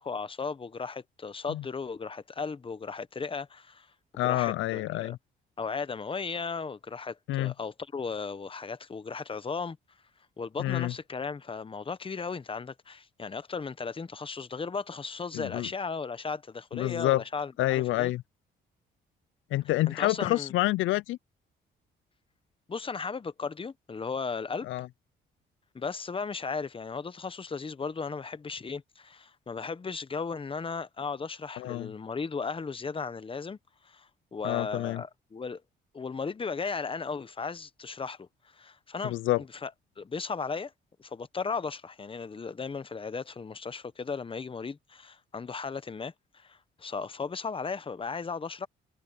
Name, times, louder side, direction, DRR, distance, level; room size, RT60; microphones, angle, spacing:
voice 1, 0.0-3.9 4.2-5.2 5.6-9.8 10.4-18.1 19.9-20.5 22.7-24.7 25.7-33.6 33.8-35.6 35.9-38.3 38.5-39.7 40.0-40.7 41.0-48.7, left 5 dB, 25° left, 1.0 m, -36 dB
voice 2, 4.2-5.2 7.3-7.5 10.6-10.9 15.3-15.7 16.7-17.2 17.6-18.2 19.5-21.2 24.6-24.9 31.6-31.9 34.4-35.0 39.0-39.4, left 16 dB, 80° left, 0.4 m, -28 dB
cardioid pair, 90°, 20 cm